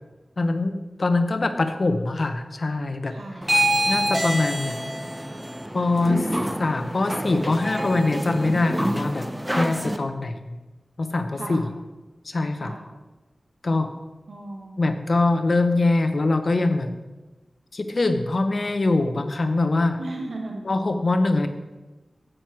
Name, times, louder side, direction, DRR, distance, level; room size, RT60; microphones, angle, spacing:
voice 1, 0.4-3.2 3.9-4.8 5.7-6.3 6.6-9.3 9.5-10.6 11.0-11.7 12.2-12.7 13.6-13.9 14.8-16.9 17.7-20.0 20.6-21.5, left 2 dB, 60° left, 8 dB, 0.9 m, -23 dB
voice 2, 3.1-3.5 11.3-11.7 12.6-12.9 14.3-14.9 20.0-20.7, right 2 dB, 85° right, 1 dB, 1.4 m, -36 dB
sound 1, 3.4-10.0, equal, 10° right, 0.7 m, -26 dB
9.5 x 7.7 x 4.6 m, 1.1 s
cardioid pair, 50°, 0 cm